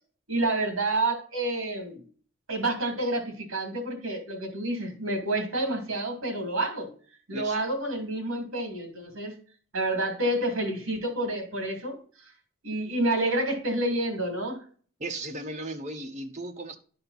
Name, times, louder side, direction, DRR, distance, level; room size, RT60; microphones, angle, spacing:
voice 1, 0.3-2.0 2.5-6.9 7.3-9.3 9.7-12.0 12.6-14.6, right 1 dB, 65° right, 2.6 m, -29 dB
voice 2, 7.3-7.6 15.0-16.8, right 2 dB, 35° right, 1.0 m, -36 dB
11.5 x 4.3 x 4.1 m
head